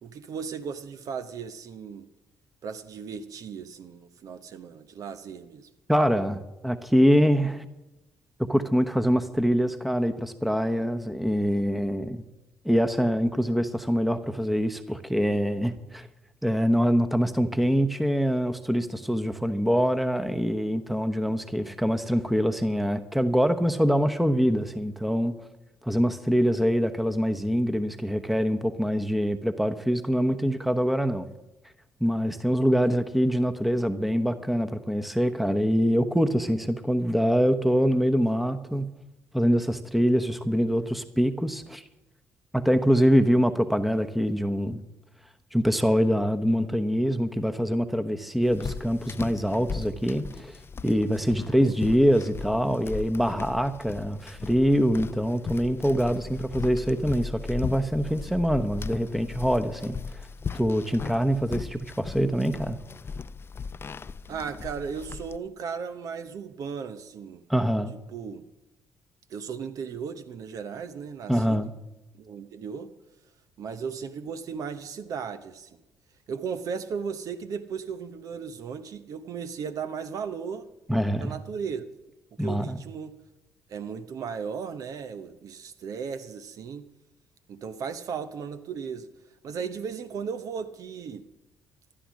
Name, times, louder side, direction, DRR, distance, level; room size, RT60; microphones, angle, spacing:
voice 1, 0.0-2.1 2.6-5.7 51.6-51.8 64.3-67.4 67.9-68.4 69.3-71.7 72.1-72.9 73.6-75.8 76.3-80.7 81.2-81.8 82.4-83.2 83.7-86.9 87.5-89.1 89.4-91.2, right 6 dB, 60° right, 0.8 m, -36 dB
voice 2, 5.9-7.6 8.4-12.2 12.6-16.1 16.4-25.3 25.8-31.3 32.0-38.9 39.3-41.8 42.5-44.8 45.5-50.5 50.8-60.2 60.5-62.8 67.5-67.9 71.3-71.7 80.9-81.3 82.4-82.8, equal, ahead, 1.0 m, -24 dB
sound 1, 48.4-65.4, left 5 dB, 35° left, 0.5 m, -37 dB
14.0 x 11.5 x 6.3 m
hypercardioid pair, 55°, 7 cm